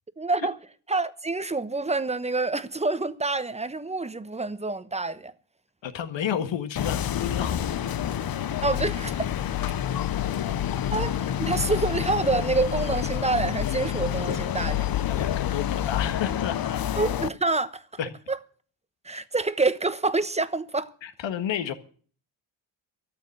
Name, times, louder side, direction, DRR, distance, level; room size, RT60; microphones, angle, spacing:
voice 1, 0.2-0.6 0.9-5.3 8.6-9.3 10.9-14.9 17.0-17.9 18.3-18.4 19.0-20.9, right 3 dB, 15° right, 1.0 m, -27 dB
voice 2, 5.8-7.7 15.0-16.8 18.0-18.1 21.0-21.7, left 9 dB, 65° left, 1.7 m, -31 dB
sound 1, 6.8-17.3, left 10 dB, 50° left, 0.8 m, -28 dB
13.5 x 7.1 x 9.5 m
cardioid pair, 90°, 47 cm